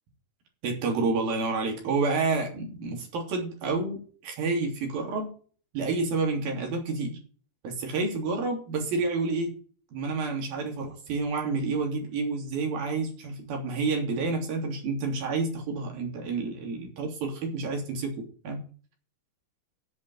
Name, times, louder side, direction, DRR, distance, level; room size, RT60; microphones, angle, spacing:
voice 1, 0.6-5.3 5.7-7.2 7.6-9.5 9.9-18.1 18.4-18.6, right 3 dB, 75° right, 1 dB, 5.0 m, -29 dB
15.5 x 5.5 x 7.2 m, 0.42 s
omnidirectional pair, 4.2 m